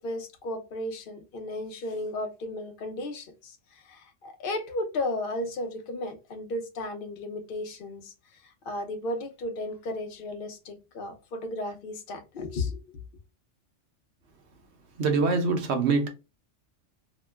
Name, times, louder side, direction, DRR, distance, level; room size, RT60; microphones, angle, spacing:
voice 1, 0.0-8.1 8.4-12.8, left 2 dB, 50° left, 0.8 m, -34 dB
voice 2, 15.0-16.1, right 4 dB, 65° right, 0.9 m, -24 dB
2.9 x 2.0 x 3.3 m
omnidirectional pair, 1.3 m